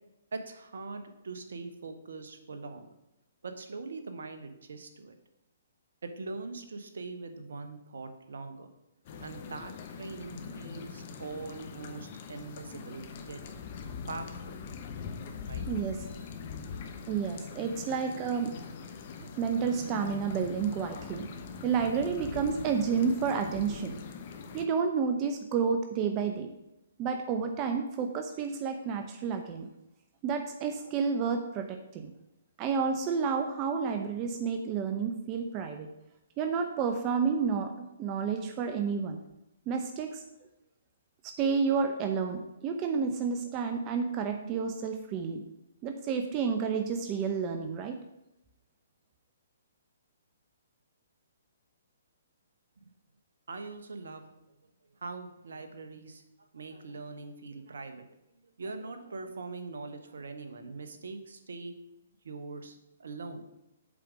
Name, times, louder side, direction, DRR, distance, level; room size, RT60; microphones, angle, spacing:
voice 1, 0.3-2.9 3.4-5.2 6.0-8.7 9.2-13.4 14.1-14.6 15.4-15.7 16.8-16.9 53.5-54.2 55.0-58.1 58.6-61.7 62.2-63.4, right 3 dB, 70° right, 7 dB, 1.2 m, -42 dB
sound 1, 9.0-24.7, left 5 dB, 45° left, 1.0 m, -42 dB
voice 2, 15.7-16.0 17.1-18.5 19.2-21.3 21.6-23.9 24.5-26.5 27.0-29.7 30.2-32.1 32.6-35.9 36.4-39.2 39.7-40.2 41.2-45.4 45.8-48.0, right 6 dB, 30° right, 6 dB, 0.7 m, -30 dB
7.6 x 5.1 x 6.2 m, 0.90 s
figure-of-eight pair, 130°, 0 cm